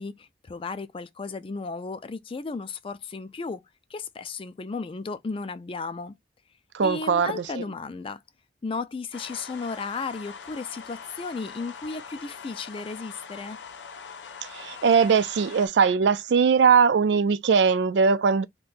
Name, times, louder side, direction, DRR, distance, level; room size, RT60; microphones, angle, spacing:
voice 1, 0.0-3.6 3.9-6.1 6.8-8.2 8.6-13.6, left 4 dB, 30° left, 0.4 m, -34 dB
voice 2, 6.7-7.6 14.5-18.4, right 6 dB, 80° right, 0.4 m, -20 dB
sound 1, 9.1-15.7, left 6 dB, 85° left, 0.5 m, -42 dB
2.6 x 2.2 x 3.8 m
head